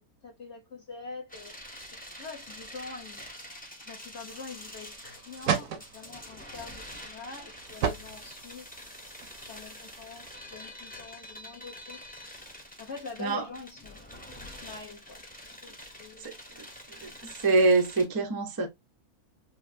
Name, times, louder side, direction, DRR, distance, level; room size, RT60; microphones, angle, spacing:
voice 1, 0.0-1.6 2.1-3.2 3.8-8.7 9.0-12.0 12.8-14.0 14.5-16.3 17.1-17.2 18.6-18.7, left 4 dB, 55° left, 1.1 m, -45 dB
sound 1, 1.3-18.0, left 1 dB, 10° left, 0.6 m, -46 dB
sound 2, 4.3-10.6, right 7 dB, 70° right, 1.1 m, -37 dB
voice 2, 16.2-16.6 17.0-18.7, right 3 dB, 30° right, 0.4 m, -25 dB
5.2 x 2.1 x 2.5 m
omnidirectional pair, 1.6 m